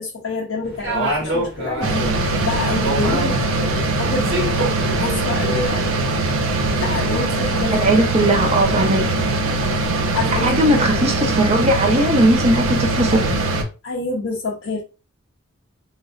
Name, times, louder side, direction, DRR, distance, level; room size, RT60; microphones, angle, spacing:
voice 1, 0.0-4.4 4.9-5.9 6.4-6.5 6.8-7.7 10.1-10.8 13.8-14.8, left 3 dB, 65° left, 0.6 m, -27 dB
sound 1, 0.6-5.7, right 1 dB, 60° right, 1.2 m, -27 dB
sound 2, 1.8-13.6, right 2 dB, 75° right, 0.6 m, -21 dB
voice 2, 7.7-9.3 10.4-13.3, right 1 dB, 30° right, 0.6 m, -18 dB
3.2 x 2.5 x 2.3 m
head